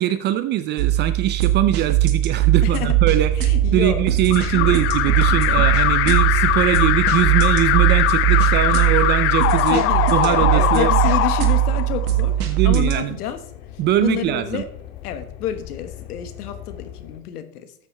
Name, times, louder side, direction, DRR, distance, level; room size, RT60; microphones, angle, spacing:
voice 1, 0.0-3.3 3.7-9.8 10.1-10.9 12.5-13.2 13.8-14.6, right 12 dB, 25° right, 13 dB, 0.4 m, -22 dB
sound 1, 0.8-13.0, right 13 dB, 75° right, 2.0 m, -20 dB
voice 2, 2.6-3.0 3.4-4.1 4.5-4.8 5.3-5.4 9.7-13.4 14.0-14.7 15.0-17.7, left 10 dB, 75° left, 9 dB, 1.6 m, -29 dB
sound 2, 2.7-17.2, left 13 dB, 55° left, 1.9 m, -36 dB
Alarm, 4.3-12.2, left 14 dB, 30° left, 0.5 m, -21 dB
13.0 x 8.1 x 3.3 m, 0.69 s
hypercardioid pair, 105°, 46 cm